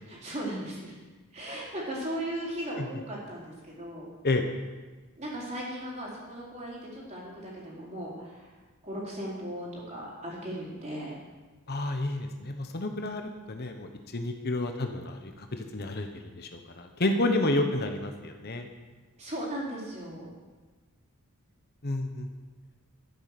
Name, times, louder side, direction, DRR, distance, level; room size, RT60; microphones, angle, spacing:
voice 1, 0.1-0.9 1.3-4.1 5.2-8.5 8.8-11.2 19.2-20.3, right 1 dB, 30° right, -5 dB, 4.5 m, -37 dB
voice 2, 11.7-16.1 16.3-18.7 21.8-22.3, left 2 dB, 45° left, 5 dB, 1.1 m, -30 dB
12.5 x 10.5 x 6.8 m, 1.3 s
head